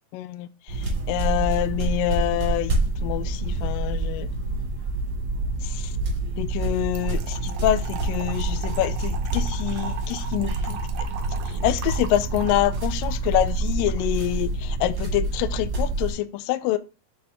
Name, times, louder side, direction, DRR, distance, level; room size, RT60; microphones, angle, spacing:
voice 1, 0.1-2.7 3.0-4.3 5.6-5.9 6.4-10.8 11.5-16.8, left 14 dB, 85° left, 2.0 m, -26 dB
sound 1, 0.7-16.1, right 2 dB, 35° right, 1.7 m, -27 dB
Trickle dribble / Fill (with liquid), 6.9-14.0, right 7 dB, 70° right, 2.2 m, -40 dB
7.8 x 4.1 x 3.5 m
omnidirectional pair, 4.4 m